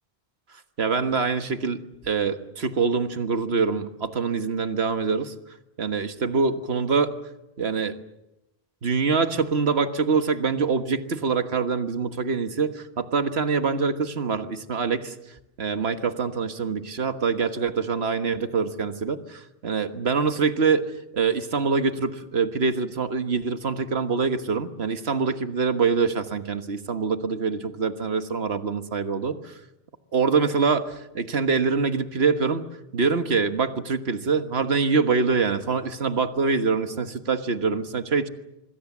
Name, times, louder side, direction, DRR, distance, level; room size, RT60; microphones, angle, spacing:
voice 1, 0.8-5.3 5.8-7.1 7.6-7.9 8.8-15.1 15.6-20.9 21.1-29.5 30.1-32.6 32.9-38.3, right 5 dB, 85° right, 9 dB, 1.7 m, -25 dB
27.0 x 22.0 x 7.3 m, 0.92 s
omnidirectional pair, 1.0 m